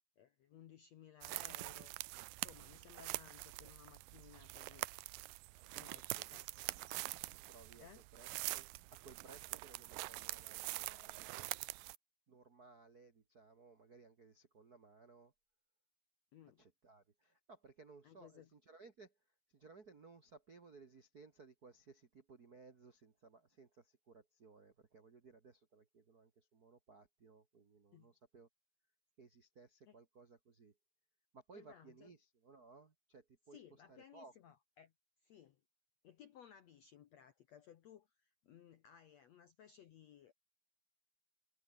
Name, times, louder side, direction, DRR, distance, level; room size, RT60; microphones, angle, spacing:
voice 1, 0.2-2.0 2.3-4.9 5.7-6.5 7.8-8.0 16.3-16.6 18.0-18.5 27.9-28.1 29.9-30.0 31.5-32.1 33.5-34.9 35.2-35.6 36.0-40.3, left 9 dB, 70° left, 1.6 m, -60 dB
sound 1, 1.2-12.0, right 21 dB, 85° right, 2.0 m, -45 dB
voice 2, 6.1-6.6 7.5-7.9 8.1-11.6 12.3-15.3 16.6-19.1 19.5-28.5 29.2-30.7 31.3-34.3, right 4 dB, 50° right, 1.1 m, -61 dB
omnidirectional pair, 4.5 m